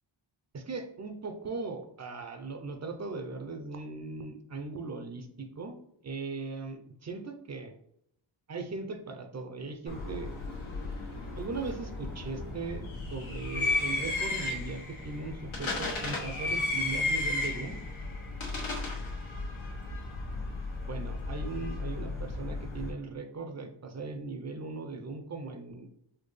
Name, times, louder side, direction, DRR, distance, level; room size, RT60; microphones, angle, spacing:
voice 1, 0.5-5.8 6.0-7.7 8.5-10.3 11.3-12.8 13.1-17.8 20.8-25.9, right 3 dB, 35° right, 6 dB, 0.6 m, -39 dB
sound 1, 9.9-22.9, left 3 dB, 80° left, 1.3 m, -34 dB
4.3 x 2.3 x 3.2 m, 0.74 s
cardioid pair, 75°, 48 cm